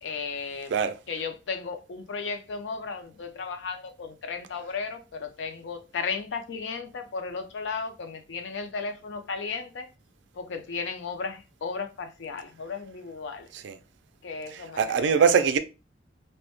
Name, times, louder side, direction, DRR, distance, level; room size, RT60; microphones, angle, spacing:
voice 1, 0.0-0.8 1.1-9.9 10.3-13.5 14.2-15.4, left 5 dB, 80° left, 0.4 m, -35 dB
voice 2, 14.8-15.6, right 6 dB, 70° right, 0.3 m, -22 dB
2.1 x 2.0 x 2.8 m
head